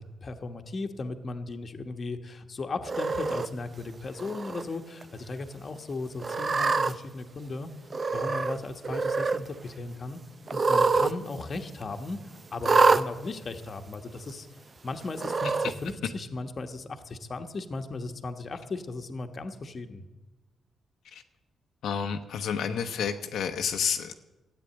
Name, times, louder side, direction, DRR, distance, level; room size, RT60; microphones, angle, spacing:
voice 1, 0.0-7.7 8.1-10.2 10.5-12.2 12.5-14.5 14.8-20.0, left 3 dB, 35° left, 6 dB, 1.2 m, -36 dB
Cat, 2.9-3.5 4.2-4.6 5.0-5.1 6.2-6.9 7.9-8.6 8.8-9.4 10.5-11.1 11.4-11.5 12.6-13.0 13.9-14.0 15.1-15.7, right 4 dB, 35° right, 0.6 m, -25 dB
voice 2, 21.8-24.1, left 7 dB, 80° left, 5 dB, 0.9 m, -30 dB
14.0 x 9.0 x 8.7 m, 1.1 s
cardioid pair, 110°, 0 cm